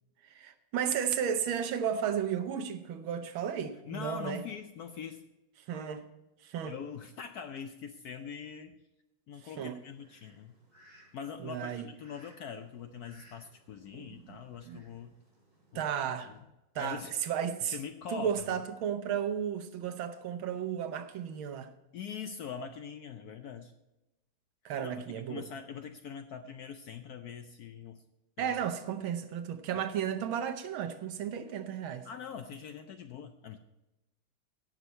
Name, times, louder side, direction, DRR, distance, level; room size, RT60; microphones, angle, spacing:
voice 1, 0.3-4.4 5.7-6.0 6.4-6.7 9.6-9.8 11.4-11.9 14.0-14.4 14.7-14.8 15.7-16.3 16.7-17.8 18.1-21.7 24.6-25.4 28.4-32.1, right 8 dB, 75° right, 1.6 m, -34 dB
voice 2, 3.9-5.2 6.6-8.8 9.3-10.5 11.1-15.2 15.7-15.8 16.3-16.4 16.7-17.1 17.7-18.5 21.9-23.7 24.8-28.0 28.4-28.5 32.0-33.6, left 7 dB, 85° left, 0.8 m, -43 dB
Fowl, 9.4-16.4, right 1 dB, 45° right, 4.8 m, -63 dB
16.5 x 6.3 x 4.3 m
omnidirectional pair, 2.3 m